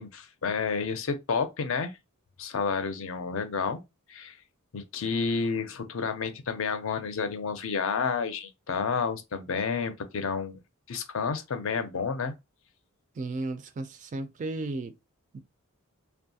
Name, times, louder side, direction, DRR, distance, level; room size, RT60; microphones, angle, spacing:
voice 1, 0.0-1.9 2.4-3.8 4.1-4.4 4.7-10.6 10.9-12.3, left 5 dB, 65° left, 0.5 m, -30 dB
voice 2, 13.2-15.0 15.3-15.4, right 2 dB, 35° right, 0.3 m, -34 dB
2.6 x 2.3 x 2.7 m
head